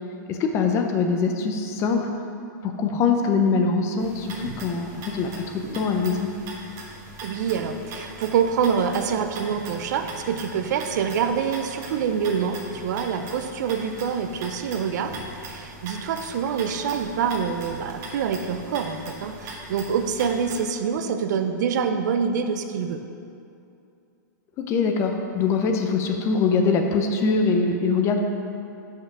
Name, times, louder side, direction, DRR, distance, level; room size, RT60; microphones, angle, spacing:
voice 1, 0.3-2.1 2.6-6.3 24.6-28.2, left 4 dB, 25° left, 4 dB, 0.6 m, -23 dB
sound 1, 4.0-20.6, right 2 dB, 30° right, 1.3 m, -40 dB
voice 2, 7.2-23.0, right 6 dB, 65° right, 7 dB, 0.6 m, -26 dB
5.6 x 5.6 x 6.0 m, 2.6 s
hypercardioid pair, 145°, 10 cm